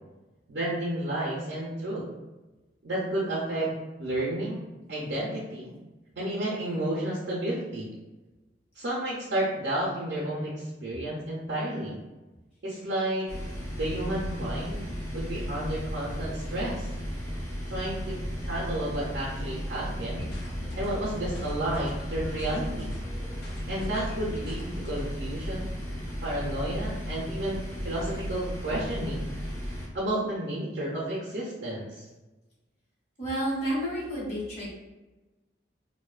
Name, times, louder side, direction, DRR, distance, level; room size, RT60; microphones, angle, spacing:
voice 1, 0.5-2.1 2.8-3.7 4.0-4.6 4.9-5.7 6.2-7.9 8.8-12.0 12.6-13.3 13.8-16.9 17.7-18.2 18.4-20.3 20.8-22.9 23.7-25.7 26.2-29.3 29.9-32.1, right 1 dB, 55° right, -6 dB, 0.5 m, -31 dB
sound 1, 13.3-29.9, equal, 15° left, 0.5 m, -35 dB
sound 2, 20.0-25.0, left 1 dB, 60° left, 0.6 m, -42 dB
voice 2, 33.2-34.7, right 1 dB, 35° left, -8 dB, 1.1 m, -30 dB
2.6 x 2.1 x 2.3 m, 1.1 s
head